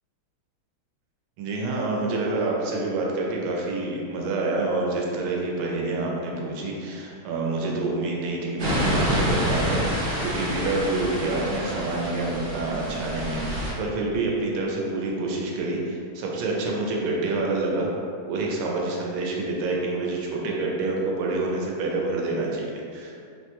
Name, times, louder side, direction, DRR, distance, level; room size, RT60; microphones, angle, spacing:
voice 1, 1.4-9.9 10.2-17.9 18.2-23.1, right 2 dB, 85° right, -2 dB, 1.4 m, -27 dB
sound 1, 8.6-13.7, equal, 50° right, 0.9 m, -27 dB
4.1 x 2.2 x 2.9 m, 2.3 s
omnidirectional pair, 2.3 m